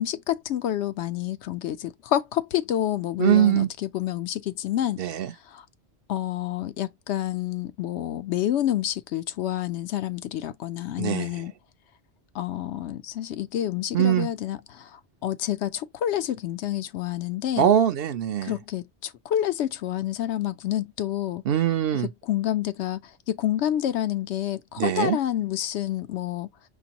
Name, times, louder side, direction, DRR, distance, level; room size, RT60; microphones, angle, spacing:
voice 1, 0.0-5.0 5.5-5.6 6.1-11.5 12.3-17.7 18.4-21.4 22.3-23.0 23.3-26.5, left 12 dB, 80° left, 0.9 m, -28 dB
voice 2, 3.2-3.7 5.0-5.3 11.0-11.5 13.9-14.3 17.6-18.6 21.4-22.1 24.8-25.2, right 10 dB, 65° right, 0.7 m, -22 dB
5.9 x 2.6 x 2.8 m
omnidirectional pair, 1.1 m